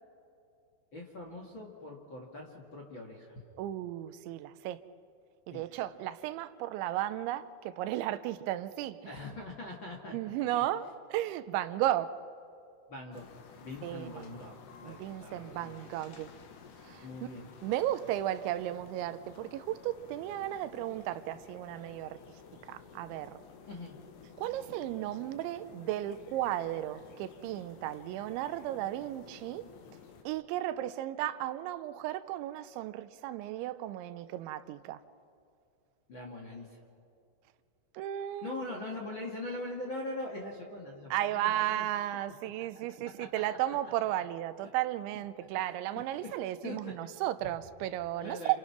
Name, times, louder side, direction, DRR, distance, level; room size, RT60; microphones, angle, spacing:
voice 1, 0.9-3.4 5.5-5.6 9.0-10.1 10.5-10.6 12.9-13.2 13.6-14.6 14.8-15.7 17.0-17.5 23.7-24.0 36.1-36.8 38.4-41.9 43.2-43.4 43.8-43.9 45.4-45.5 46.6-46.9 48.2-48.6, left 2 dB, 40° left, -1 dB, 2.0 m, -42 dB
voice 2, 3.6-4.8 5.5-9.0 10.1-12.2 13.8-14.5 14.8-16.3 16.8-17.1 17.6-22.2 22.7-23.4 24.4-29.6 30.2-35.0 37.9-38.6 41.1-48.6, right 13 dB, 85° right, 12 dB, 3.1 m, -34 dB
sound 1, 13.1-30.2, left 6 dB, 70° left, 3.7 m, -53 dB
29.5 x 28.0 x 6.0 m, 2.5 s
omnidirectional pair, 5.3 m